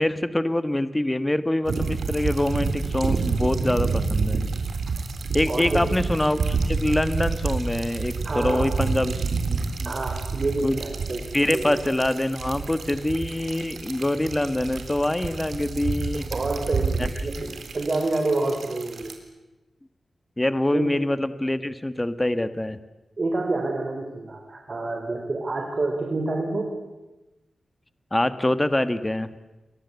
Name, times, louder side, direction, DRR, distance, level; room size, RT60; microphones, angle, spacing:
voice 1, 0.0-4.4 5.3-9.9 10.6-10.8 11.3-16.2 17.0-17.1 17.4-17.5 20.4-22.8 28.1-29.3, left 1 dB, 15° left, 12 dB, 1.5 m, -25 dB
sound 1, 1.7-19.1, right 4 dB, 85° right, 3.8 m, -29 dB
voice 2, 5.5-5.8 8.2-8.7 9.8-11.2 11.5-11.8 16.1-19.1 20.7-20.9 23.2-26.7, right 2 dB, 45° right, 3 dB, 4.5 m, -28 dB
29.5 x 24.0 x 8.3 m, 1.1 s
wide cardioid pair, 90°, 0 cm